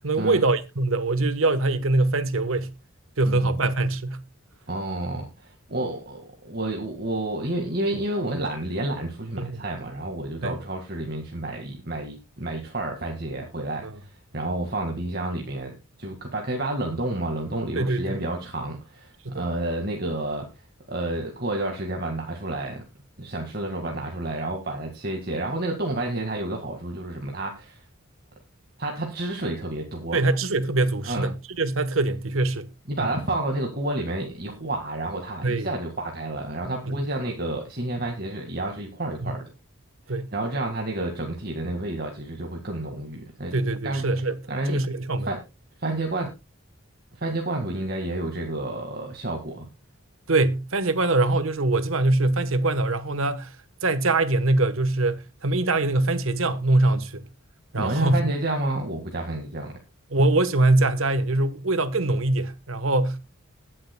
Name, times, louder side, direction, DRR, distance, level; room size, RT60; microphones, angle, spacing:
voice 1, 0.0-2.7 3.2-4.2 9.4-9.6 10.4-10.6 13.8-14.0 17.8-18.2 19.2-19.4 30.1-32.7 33.0-33.1 35.4-35.7 36.9-37.0 39.2-39.3 40.1-40.3 43.5-44.4 44.7-45.3 50.3-53.5 53.8-57.2 57.7-58.2 60.1-63.2, right 2 dB, 75° right, 1.1 m, -23 dB
voice 2, 3.3-3.6 4.7-15.7 16.0-20.5 20.9-22.8 23.2-27.8 28.8-30.2 31.1-31.3 32.9-39.4 40.3-43.5 43.8-44.0 44.5-44.8 45.2-45.4 45.8-46.3 47.2-49.7 57.7-59.7, right 2 dB, 45° right, 1.9 m, -30 dB
20.5 x 7.7 x 2.2 m
head